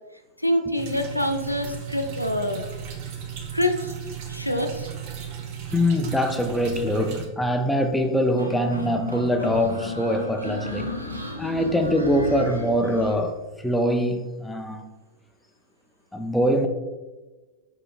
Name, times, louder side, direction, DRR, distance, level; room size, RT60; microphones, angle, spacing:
voice 1, 0.4-2.6 3.5-3.9 4.3-4.9, left 1 dB, 85° left, 0.3 m, -25 dB
sound 1, 0.8-7.2, right 8 dB, 45° right, 0.6 m, -35 dB
voice 2, 5.7-10.9 11.4-13.4 13.6-14.8 16.1-16.7, equal, 5° left, 0.4 m, -23 dB
sound 2, 8.4-13.2, left 1 dB, 85° right, 0.5 m, -34 dB
4.9 x 3.7 x 2.3 m
figure-of-eight pair, 90°, 0 cm